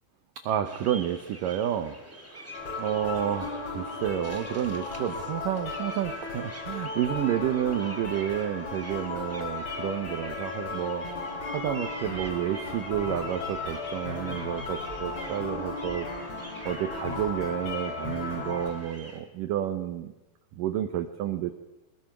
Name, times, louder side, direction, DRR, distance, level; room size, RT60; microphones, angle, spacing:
voice 1, 0.4-2.0 2.8-11.1 11.5-16.2 16.6-20.1 20.5-21.5, right 11 dB, 85° right, 9 dB, 1.9 m, -30 dB
sound 1, 0.6-19.2, right 1 dB, 5° right, 2.0 m, -45 dB
sound 2, 2.5-18.7, left 3 dB, 45° left, 4.7 m, -36 dB
22.0 x 20.5 x 6.0 m, 1.0 s
omnidirectional pair, 5.0 m